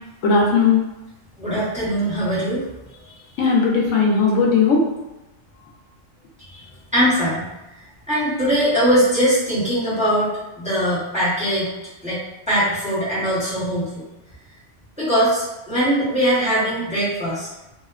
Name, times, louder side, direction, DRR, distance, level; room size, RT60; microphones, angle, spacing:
voice 1, 0.2-0.8 3.4-4.9, left 4 dB, 75° left, -3 dB, 0.9 m, -17 dB
voice 2, 1.4-2.7 6.5-6.6 6.9-7.5 8.1-10.3 10.6-11.7 12.0-14.1 15.0-17.5, equal, 5° right, -11 dB, 0.9 m, -21 dB
2.7 x 2.0 x 2.4 m, 0.99 s
omnidirectional pair, 1.3 m